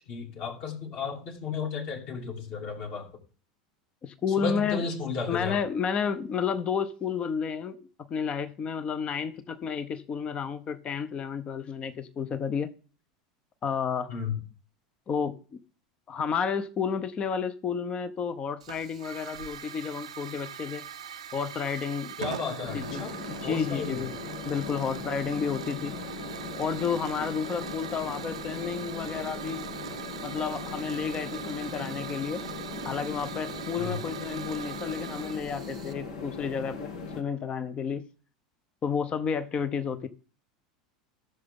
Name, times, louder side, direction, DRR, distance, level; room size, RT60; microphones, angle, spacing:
voice 1, 0.1-3.1 4.3-5.6 14.1-14.4 22.2-23.1 23.4-24.0 33.8-34.0, left 5 dB, 50° left, 1 dB, 2.9 m, -33 dB
voice 2, 4.0-4.8 5.3-12.7 13.6-14.1 15.1-15.6 16.1-20.8 21.3-22.2 22.7-23.0 23.4-24.1 24.5-26.0 26.5-29.6 30.2-32.4 32.8-38.0 38.8-40.1, left 6 dB, 30° left, 11 dB, 0.8 m, -31 dB
Hiss / Fire, 18.6-35.9, right 8 dB, 80° right, 0.6 m, -41 dB
sound 1, 22.6-37.2, left 4 dB, 75° left, 1.7 m, -39 dB
14.5 x 6.8 x 3.7 m, 0.39 s
hypercardioid pair, 80°, 3 cm